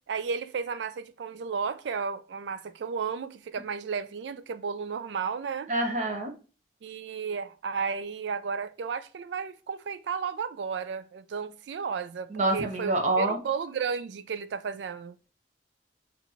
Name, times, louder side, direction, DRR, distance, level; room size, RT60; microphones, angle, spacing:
voice 1, 0.1-5.7 6.8-15.2, right 6 dB, 85° right, 0.4 m, -33 dB
voice 2, 5.7-6.3 12.3-13.4, right 2 dB, 40° right, 0.7 m, -26 dB
4.3 x 2.6 x 2.7 m
head